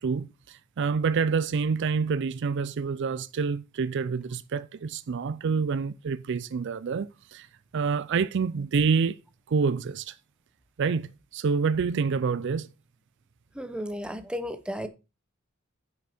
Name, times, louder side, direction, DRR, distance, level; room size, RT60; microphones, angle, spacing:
voice 1, 0.0-7.5 7.7-9.2 9.5-10.1 10.8-12.7, right 5 dB, 60° right, 0.4 m, -27 dB
voice 2, 13.5-14.9, equal, 5° right, 0.8 m, -34 dB
9.9 x 6.0 x 4.3 m
head